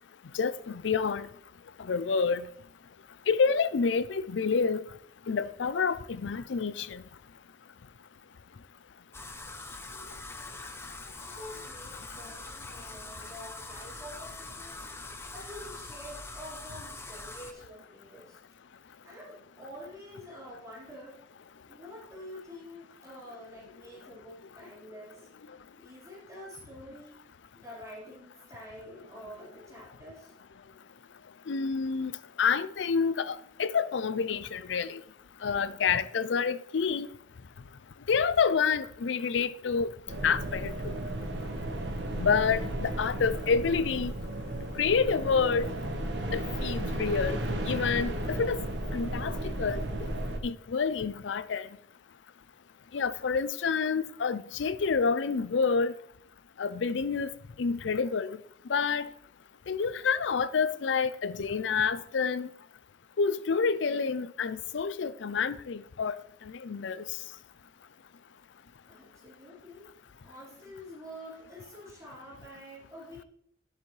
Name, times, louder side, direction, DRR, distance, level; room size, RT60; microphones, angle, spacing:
voice 1, 0.3-1.3 1.8-2.5 3.3-4.8 5.3-7.0 31.5-32.1 32.4-35.0 35.4-37.1 38.1-39.9 40.2-41.0 42.2-44.1 44.8-45.7 46.3-48.6 48.9-50.1 50.4-51.7 52.9-55.9 56.6-57.3 57.6-58.4 58.7-59.1 59.7-62.5 63.2-67.1, left 5 dB, 80° left, 0.5 m, -28 dB
sound 1, 9.1-17.5, left 2 dB, 15° left, 0.7 m, -43 dB
voice 2, 11.2-14.8 15.3-18.4 19.0-21.2 21.6-25.3 25.8-27.2 27.5-30.3 68.8-69.9 70.2-73.3, equal, 20° right, 4.5 m, -47 dB
sound 2, 40.1-50.4, right 1 dB, 65° right, 1.3 m, -34 dB
13.0 x 8.1 x 3.3 m
head